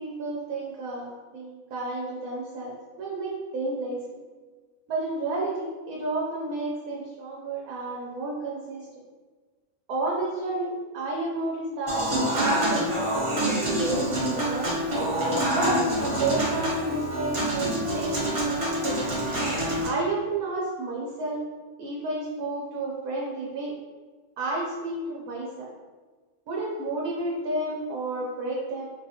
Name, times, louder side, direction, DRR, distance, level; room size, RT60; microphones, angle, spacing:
voice 1, 0.0-4.0 4.9-8.9 9.9-14.8 15.5-19.0 19.8-21.4 21.8-23.8 24.4-25.7 26.5-28.9, right 2 dB, 80° right, -4 dB, 1.1 m, -31 dB
Human voice / Acoustic guitar / Piano, 11.9-19.9, right 1 dB, 60° right, 0.3 m, -26 dB
3.4 x 2.3 x 2.8 m, 1.3 s
omnidirectional pair, 1.5 m